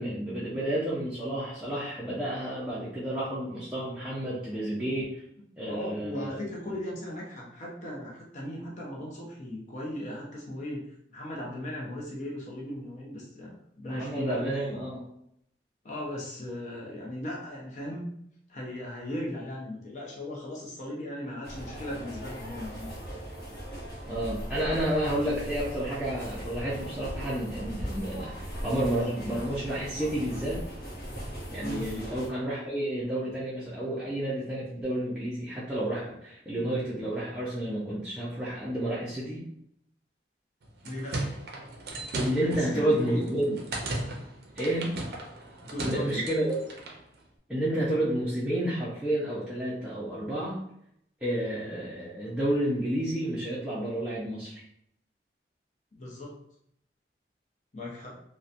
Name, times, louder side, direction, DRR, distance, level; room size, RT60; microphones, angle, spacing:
voice 1, 0.0-5.2 5.6-6.4 13.9-15.1 24.1-30.6 31.5-39.4 42.2-43.6 44.5-45.0 45.8-46.6 47.5-50.6 51.2-54.6, right 1 dB, 5° right, -10 dB, 0.5 m, -30 dB
voice 2, 5.7-10.8 11.1-14.5 15.8-18.1 18.5-22.9 31.6-31.9 40.8-41.3 42.3-43.3 45.6-46.2 55.9-56.4 57.7-58.2, left 1 dB, 45° left, -4 dB, 0.5 m, -37 dB
sound 1, 21.4-32.3, equal, 60° left, 0.9 m, -39 dB
sound 2, 40.6-47.0, right 2 dB, 60° right, 0.5 m, -37 dB
2.8 x 2.1 x 2.4 m, 0.73 s
head